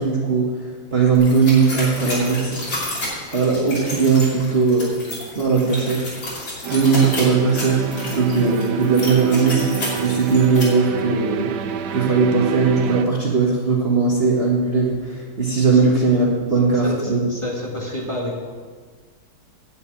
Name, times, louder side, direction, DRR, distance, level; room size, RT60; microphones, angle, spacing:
voice 1, 0.0-2.8 3.3-9.7 10.0-11.5 11.9-17.2, right 4 dB, 35° right, -4 dB, 1.5 m, -19 dB
sound 1, 1.1-10.6, left 1 dB, 75° left, 3.8 m, -31 dB
sound 2, 6.6-13.1, right 8 dB, 70° right, 1.2 m, -27 dB
voice 2, 16.8-18.5, left 1 dB, 15° left, -4 dB, 1.8 m, -29 dB
10.0 x 6.6 x 8.3 m, 1.5 s
omnidirectional pair, 2.1 m